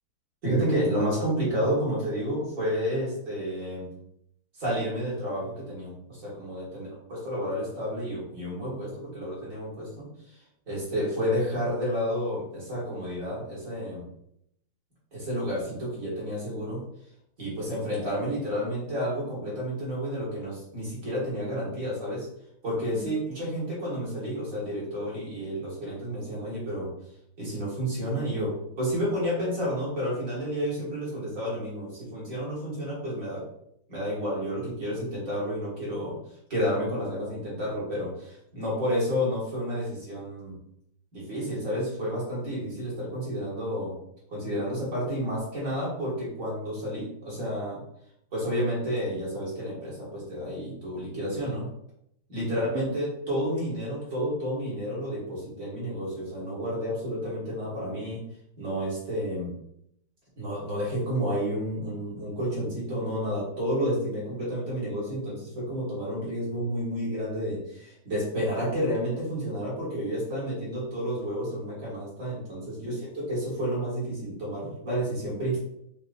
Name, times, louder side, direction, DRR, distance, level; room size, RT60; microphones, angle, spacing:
voice 1, 0.4-3.9 4.6-10.1 10.7-14.0 15.1-16.8 17.4-22.3 22.6-26.9 27.4-33.4 33.9-36.2 36.5-40.6 41.1-43.9 44.3-47.8 48.3-51.7 52.3-58.2 58.6-59.5 60.4-75.6, equal, 40° right, -6 dB, 2.0 m, -30 dB
5.0 x 3.0 x 2.5 m, 0.75 s
omnidirectional pair, 2.3 m